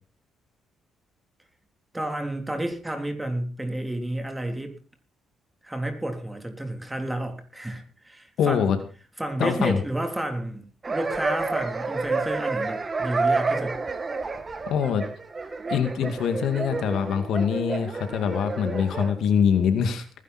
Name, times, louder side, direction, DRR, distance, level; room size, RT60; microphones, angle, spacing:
voice 1, 1.9-4.8 5.6-8.7 9.2-13.8, right 1 dB, 10° right, 5 dB, 3.5 m, -31 dB
voice 2, 8.4-8.8 9.4-9.8 14.7-15.0 15.7-20.1, left 7 dB, 75° left, 8 dB, 2.3 m, -24 dB
sound 1, 10.8-19.1, right 3 dB, 30° right, 1.8 m, -29 dB
19.5 x 11.0 x 4.4 m, 0.38 s
cardioid pair, 90°, 0 cm